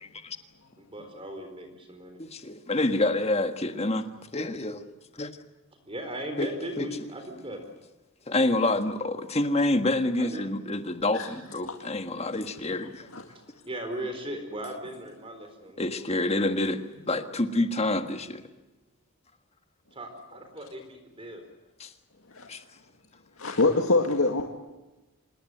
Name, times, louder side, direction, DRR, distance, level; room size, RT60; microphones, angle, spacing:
voice 1, 0.0-0.4 2.2-4.1 4.3-4.8 5.1-5.3 6.4-6.5 6.8-6.9 8.3-13.1 15.8-16.8 17.1-18.4 21.8-21.9 22.5-22.6, left 2 dB, 30° left, 1.6 m, -27 dB
voice 2, 0.8-2.2 5.9-7.6 10.2-10.5 13.6-16.1 17.1-17.3 19.9-21.4, right 1 dB, 25° right, 4.2 m, -38 dB
voice 3, 23.4-24.4, left 3 dB, 70° left, 2.0 m, -24 dB
26.5 x 20.5 x 7.9 m
head